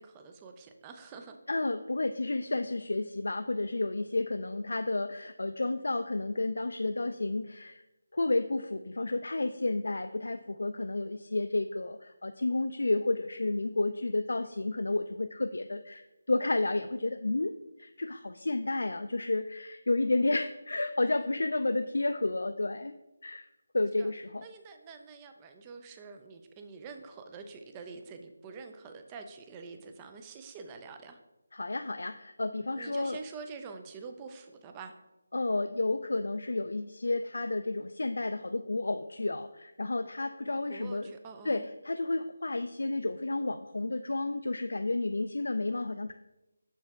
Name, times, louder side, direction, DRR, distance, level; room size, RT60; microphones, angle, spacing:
voice 1, 0.0-1.4 21.0-21.2 24.0-24.1 24.4-31.2 32.7-34.9 40.7-41.7, right 4 dB, 10° right, 6 dB, 0.3 m, -46 dB
voice 2, 1.5-7.8 8.1-16.0 16.3-17.5 17.8-22.9 23.2-23.4 23.7-24.4 31.5-33.2 35.3-41.1 41.5-46.1, left 2 dB, 75° left, 8 dB, 0.3 m, -31 dB
6.6 x 4.5 x 3.5 m, 0.98 s
figure-of-eight pair, 175°, 0 cm